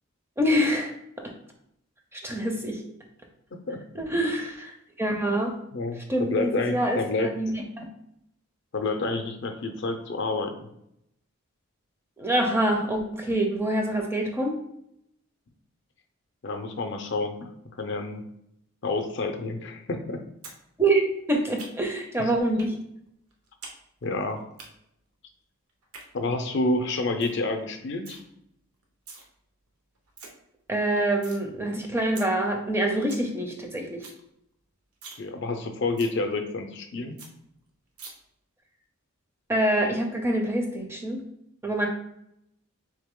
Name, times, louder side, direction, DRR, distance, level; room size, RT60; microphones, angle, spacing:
voice 1, 0.4-1.3 2.1-2.8 3.9-5.5 6.1-7.8 12.2-14.6 20.8-22.8 30.7-34.0 39.5-41.2 41.6-41.9, right 1 dB, 10° right, 2 dB, 0.4 m, -26 dB
voice 2, 5.7-7.3 8.7-10.7 16.4-17.5 17.8-18.2 18.8-20.2 22.2-22.3 24.0-24.4 26.1-28.2 35.2-37.2, left 2 dB, 50° left, 6 dB, 0.5 m, -29 dB
sound 1, 20.4-20.6 20.9-22.0 22.6-22.7 23.1-23.8 24.0-24.7 25.7-26.0 26.5-26.6 26.9-27.0 27.2-27.4 27.7-28.2 28.8-29.2 29.7-29.8 29.9-30.3 30.7-31.4 31.8-31.9 32.2-32.3 32.7-32.8 32.9-33.3 33.6-33.7 33.9-34.2 34.5-34.6 34.9-35.2 35.5-35.6 36.0-36.1 36.5-36.6 36.9-37.0 37.2-37.3 38.0-38.1, right 4 dB, 85° right, 0.9 m, -43 dB
3.7 x 3.3 x 3.6 m, 0.77 s
head